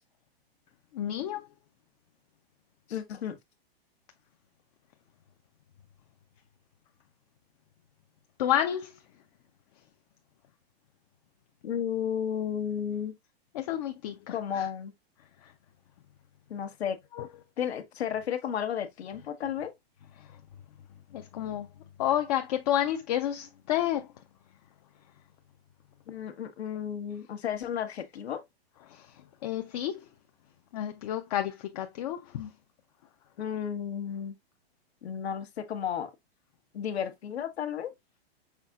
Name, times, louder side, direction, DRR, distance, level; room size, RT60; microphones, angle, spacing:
voice 1, 0.9-1.4 8.4-8.9 13.5-14.7 17.2-17.3 21.1-21.7 22.0-24.1 28.9-29.1 29.4-30.0 30.7-32.5, left 11 dB, 40° left, 0.4 m, -30 dB
voice 2, 2.9-3.4 11.6-13.1 14.3-14.9 16.5-17.0 17.6-19.7 26.1-28.4 33.4-34.4 35.0-36.1 36.7-37.9, left 8 dB, 85° left, 1.1 m, -33 dB
5.7 x 3.8 x 2.3 m
hypercardioid pair, 155°, 31 cm